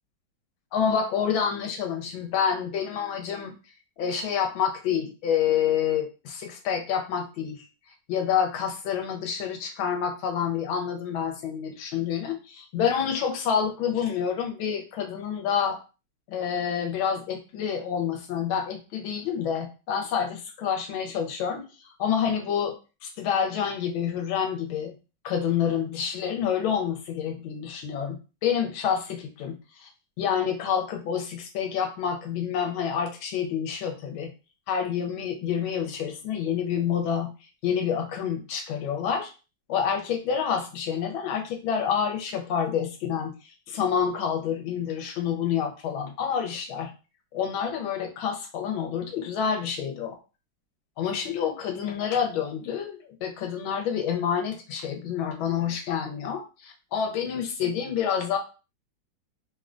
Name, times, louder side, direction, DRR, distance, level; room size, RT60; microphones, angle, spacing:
voice 1, 0.7-3.5 4.0-7.6 8.1-15.8 16.3-21.6 22.0-22.7 23.0-25.0 25.2-29.9 30.2-34.3 34.7-37.3 37.6-39.3 39.7-43.3 43.7-46.9 47.3-50.1 51.0-58.4, left 7 dB, 80° left, 3 dB, 1.4 m, -28 dB
3.5 x 2.1 x 2.4 m, 0.32 s
omnidirectional pair, 2.2 m